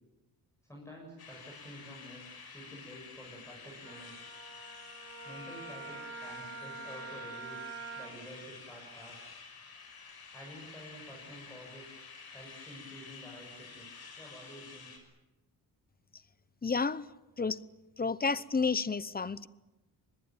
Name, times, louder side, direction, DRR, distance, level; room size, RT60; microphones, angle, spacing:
voice 1, 0.6-4.1 5.2-7.7 8.0-9.2 10.3-12.0 12.3-13.9 14.2-15.0, equal, 5° left, -2 dB, 7.2 m, -50 dB
sound 1, 1.2-15.0, left 5 dB, 70° left, 6.5 m, -50 dB
Wind instrument woodwind instrument, 3.8-8.1, right 4 dB, 40° right, 5.2 m, -45 dB
voice 2, 16.6-17.1 17.4-17.6 18.0-19.5, left 4 dB, 25° left, 17 dB, 0.8 m, -30 dB
25.0 x 20.5 x 9.0 m, 1.1 s
cardioid pair, 105°, 39 cm